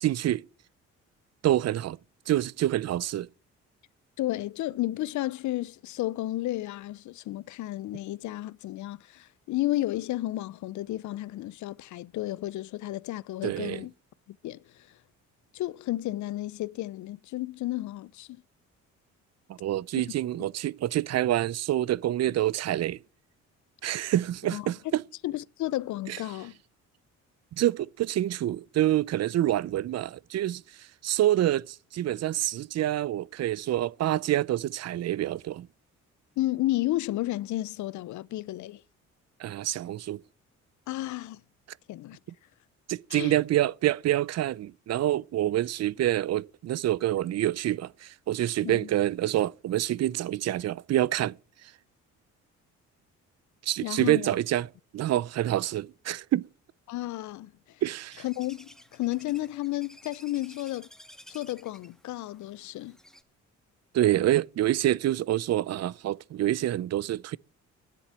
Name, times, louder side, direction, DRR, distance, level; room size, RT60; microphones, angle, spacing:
voice 1, 0.0-0.4 1.4-2.0 2.3-3.3 13.4-13.8 19.5-23.0 23.8-25.0 26.1-26.2 27.6-35.7 39.4-40.2 42.9-51.4 51.6-51.7 53.6-54.7 54.9-56.5 57.8-58.2 63.9-67.4, right 13 dB, 60° right, 0.5 m, -27 dB
voice 2, 4.2-13.9 14.3-15.0 15.5-18.4 23.8-24.0 24.5-24.7 25.2-26.6 36.4-38.8 40.9-41.4 41.9-42.2 43.1-43.4 48.6-48.9 53.8-54.3 56.9-57.8 58.2-60.9 61.3-63.0, left 16 dB, 70° left, 0.5 m, -32 dB
sound 1, 58.1-63.2, equal, ahead, 1.2 m, -54 dB
10.0 x 8.2 x 8.8 m
cardioid pair, 90°, 30 cm